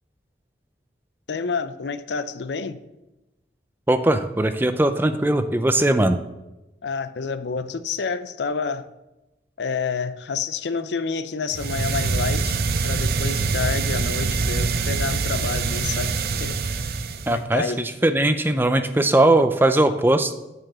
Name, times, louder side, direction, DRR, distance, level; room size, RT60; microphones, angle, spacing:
voice 1, 1.3-2.8 6.8-8.9 9.6-16.8 17.3-17.8, left 5 dB, 85° left, 13 dB, 0.5 m, -29 dB
voice 2, 3.9-6.2 17.3-20.3, right 1 dB, 10° right, 9 dB, 0.4 m, -19 dB
sound 1, 11.5-17.4, right 4 dB, 60° right, 0.6 m, -24 dB
8.9 x 5.0 x 7.3 m, 1.0 s
head